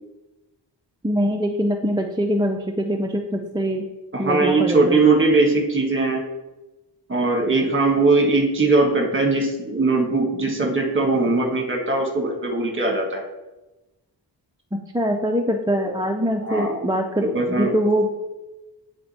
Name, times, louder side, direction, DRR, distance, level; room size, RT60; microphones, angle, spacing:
voice 1, 1.0-3.8 4.2-5.0 14.9-18.1, equal, 10° right, 2 dB, 0.4 m, -23 dB
voice 2, 4.1-6.2 7.1-13.2 16.5-16.8 17.2-17.7, right 3 dB, 25° right, 1 dB, 1.3 m, -20 dB
9.2 x 3.4 x 4.2 m, 1.1 s
wide cardioid pair, 100°, 43 cm